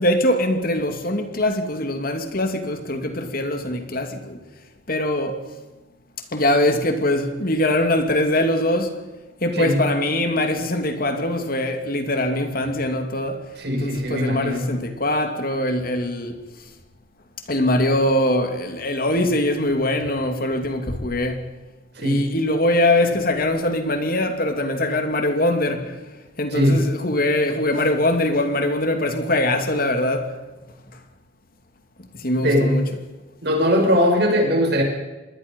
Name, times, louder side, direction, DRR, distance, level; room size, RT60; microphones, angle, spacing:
voice 1, 0.0-4.4 4.9-5.4 6.3-8.9 9.4-13.5 13.8-16.4 17.5-21.5 22.0-26.0 26.4-30.3 32.1-32.8, left 1 dB, 50° left, 2.7 m, -22 dB
voice 2, 13.6-14.7 21.9-22.3 26.5-26.9 32.3-32.9 33.4-34.8, equal, 60° right, 6.6 m, -20 dB
26.5 x 21.5 x 5.5 m
head